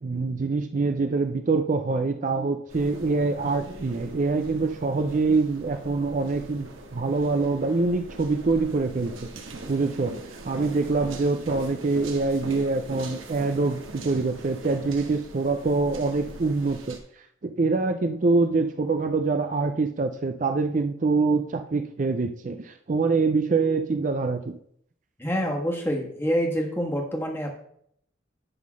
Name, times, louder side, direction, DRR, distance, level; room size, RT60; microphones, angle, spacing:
voice 1, 0.0-17.0 17.4-24.5, right 3 dB, 40° right, 7 dB, 0.4 m, -25 dB
sound 1, 2.7-17.0, right 2 dB, 85° right, 1.4 m, -41 dB
voice 2, 25.2-27.6, equal, 10° left, 1 dB, 1.4 m, -27 dB
11.0 x 3.8 x 6.2 m, 0.69 s
head